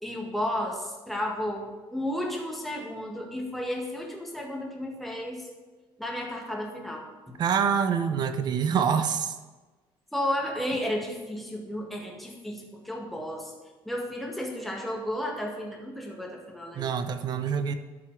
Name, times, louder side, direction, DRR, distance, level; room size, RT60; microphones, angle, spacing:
voice 1, 0.0-5.5 6.0-7.4 10.1-13.5 13.8-16.8, left 1 dB, ahead, -1 dB, 1.7 m, -33 dB
voice 2, 7.4-9.3 16.7-17.7, right 7 dB, 45° right, 9 dB, 0.8 m, -26 dB
12.5 x 5.7 x 4.7 m, 1.2 s
cardioid pair, 140°, 10 cm